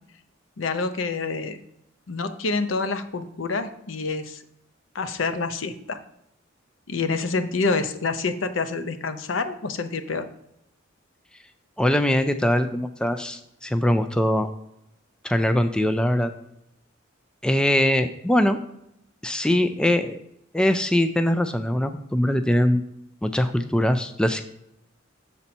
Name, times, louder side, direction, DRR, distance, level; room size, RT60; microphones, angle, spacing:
voice 1, 0.6-1.6 2.1-4.4 4.9-6.0 6.9-10.2, left 4 dB, 75° left, 10 dB, 0.6 m, -27 dB
voice 2, 11.8-14.5 15.2-16.3 17.4-18.6 19.2-20.2 20.5-22.8 23.2-24.4, left 1 dB, 5° left, 8 dB, 0.3 m, -22 dB
7.0 x 4.2 x 5.3 m, 0.79 s
head